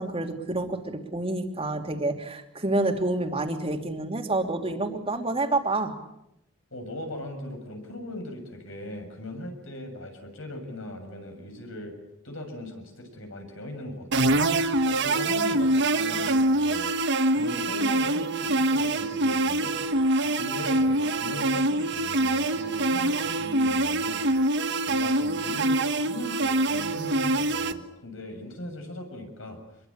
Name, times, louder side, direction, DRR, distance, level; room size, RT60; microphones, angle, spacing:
voice 1, 0.0-5.9, right 2 dB, 30° right, 4 dB, 2.9 m, -28 dB
voice 2, 6.7-11.9 12.2-16.9 17.3-24.3 24.8-29.6, left 1 dB, 70° left, 4 dB, 7.0 m, -39 dB
sound 1, 14.1-27.7, right 2 dB, 60° right, 1.4 m, -25 dB
26.0 x 22.5 x 8.8 m, 0.84 s
head